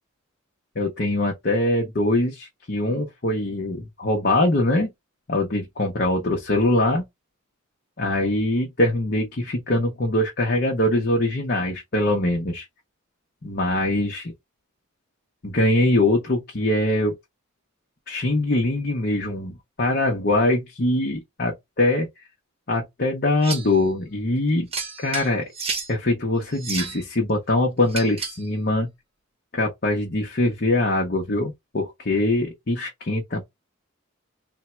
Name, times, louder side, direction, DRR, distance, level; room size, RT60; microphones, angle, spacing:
voice 1, 0.8-4.9 5.3-7.0 8.0-12.7 13.4-14.3 15.4-17.1 18.1-22.1 22.7-24.7 25.0-25.5 25.9-28.9 29.5-33.4, left 1 dB, 45° left, 0.7 m, -23 dB
sound 1, 23.4-23.8 24.7-25.9 26.5-27.0 27.9-28.5, right 4 dB, 25° right, 0.9 m, -31 dB
3.5 x 2.1 x 4.2 m
head